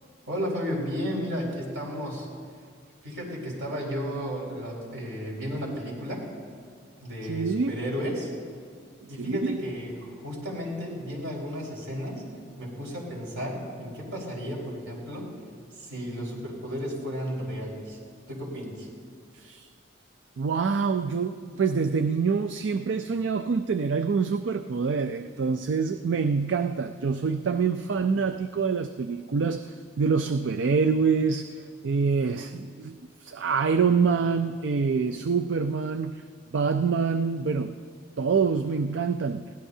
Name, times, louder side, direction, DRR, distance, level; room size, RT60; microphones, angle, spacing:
voice 1, 0.3-2.3 3.0-6.2 7.0-8.3 9.1-12.3 12.6-15.3 15.7-18.0 18.3-18.9, equal, 85° right, -3 dB, 4.5 m, -33 dB
voice 2, 7.3-7.7 9.0-9.6 19.3-19.7 20.4-33.0 33.2-36.2 36.5-37.8 38.2-39.5, right 5 dB, 70° right, 9 dB, 0.4 m, -26 dB
21.5 x 17.0 x 2.7 m, 2.1 s
head